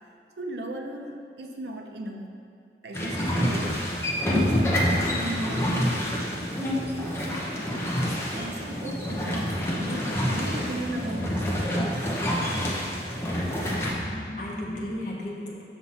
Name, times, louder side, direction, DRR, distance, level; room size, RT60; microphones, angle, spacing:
voice 1, 0.4-2.4 2.8-3.8 4.3-6.5 7.0-7.2 7.8-12.1, right 1 dB, 75° right, 2 dB, 0.8 m, -36 dB
sound 1, 2.9-13.9, equal, 15° left, 0.8 m, -27 dB
voice 2, 13.6-15.6, left 1 dB, 45° left, -4 dB, 1.2 m, -34 dB
7.3 x 5.8 x 4.2 m, 2.3 s
head